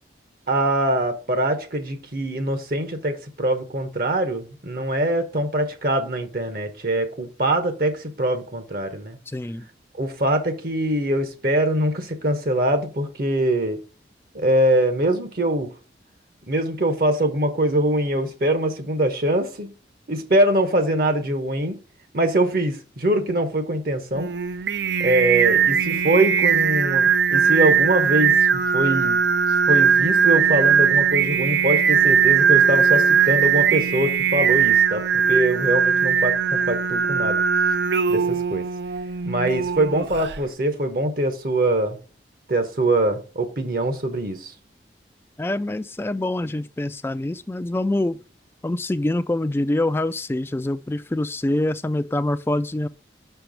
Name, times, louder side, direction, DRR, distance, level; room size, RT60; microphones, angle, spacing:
voice 1, 0.5-9.2 9.9-13.8 14.3-15.7 16.5-19.7 20.1-21.8 22.1-24.3 25.0-29.2 29.7-37.4 38.1-38.7 39.2-42.0 42.5-44.5, right 1 dB, 55° right, 1.0 m, -23 dB
voice 2, 9.3-9.7 45.4-48.2 48.6-52.9, left 1 dB, 15° left, 0.3 m, -25 dB
Singing, 24.2-40.4, right 7 dB, 70° right, 0.5 m, -19 dB
6.2 x 4.5 x 5.0 m
head